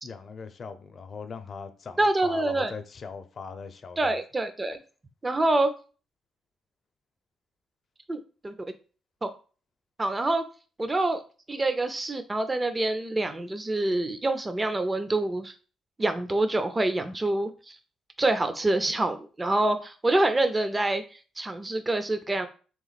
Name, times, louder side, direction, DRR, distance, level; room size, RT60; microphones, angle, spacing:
voice 1, 0.0-4.2, left 5 dB, 45° left, 0.6 m, -40 dB
voice 2, 2.0-2.7 4.0-4.8 5.2-5.7 8.1-8.5 9.2-9.3 10.0-10.5 10.8-11.2 11.5-15.5 16.0-17.8 18.2-21.0 21.4-22.5, right 2 dB, 20° right, 0.5 m, -26 dB
3.6 x 3.0 x 4.0 m
cardioid pair, 90°, 0 cm